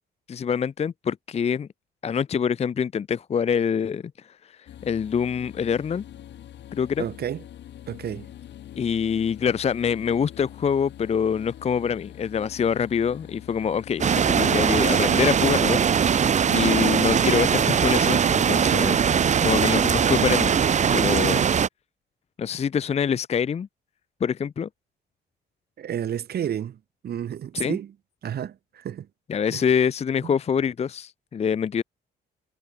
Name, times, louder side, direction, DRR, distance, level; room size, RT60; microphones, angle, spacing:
voice 1, 0.3-1.7 2.0-6.0 6.7-7.0 8.8-19.1 19.4-20.5 20.9-21.4 22.4-23.7 24.2-24.7 27.5-27.8 29.3-31.8, left 7 dB, 35° left, 0.6 m, -25 dB
sound 1, 4.7-20.6, left 11 dB, 75° left, 4.7 m, -44 dB
voice 2, 7.0-7.4 7.9-8.3 25.8-26.8 27.0-27.9 28.2-29.1 29.5-29.6, right 9 dB, 60° right, 1.6 m, -31 dB
sound 2, 14.0-21.7, right 7 dB, 40° right, 0.7 m, -21 dB
cardioid pair, 90°, 19 cm